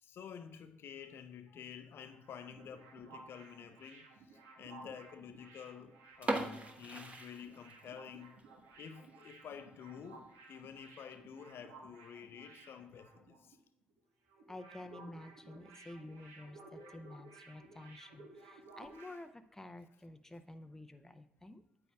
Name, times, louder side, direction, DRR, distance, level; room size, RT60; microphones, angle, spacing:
voice 1, 0.0-8.3 8.8-13.6 16.7-17.1 18.5-18.7, left 8 dB, 55° left, 0.6 m, -50 dB
sound 1, 2.0-13.6 13.8-14.0 14.3-19.3, right 3 dB, 65° right, 1.1 m, -56 dB
sound 2, 6.1-8.1 8.4-8.5 9.0-9.2 9.6-9.7 10.0-10.1 10.8-11.1, right 2 dB, 30° right, 1.1 m, -39 dB
voice 2, 14.5-21.6, left 1 dB, 10° left, 0.6 m, -50 dB
9.1 x 8.0 x 2.3 m
hypercardioid pair, 50°, 5 cm